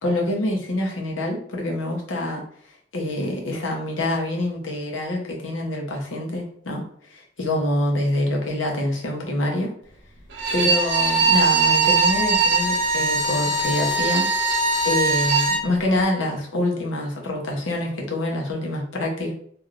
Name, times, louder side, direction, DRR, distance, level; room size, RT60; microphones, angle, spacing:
voice 1, 0.0-2.4 2.9-9.7 10.5-14.5 14.8-19.3, left 1 dB, 85° left, -1 dB, 0.9 m, -26 dB
Bowed string instrument, 10.3-15.7, right 3 dB, 75° right, 0.7 m, -20 dB
3.1 x 2.6 x 2.5 m, 0.63 s
head